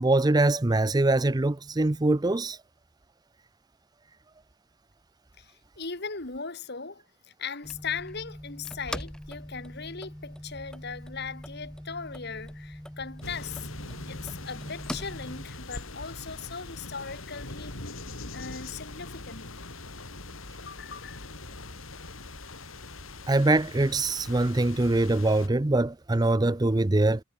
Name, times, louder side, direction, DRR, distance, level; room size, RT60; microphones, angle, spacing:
voice 1, 0.0-2.6 23.3-27.2, right 2 dB, 20° right, 0.6 m, -23 dB
voice 2, 5.4-7.0 7.4-13.7 14.1-17.9 18.3-19.5 20.7-21.2, left 5 dB, 50° left, 2.2 m, -38 dB
sound 1, 7.6-15.5, equal, 5° left, 2.6 m, -41 dB
sound 2, 13.2-25.5, left 2 dB, 75° left, 4.3 m, -42 dB
head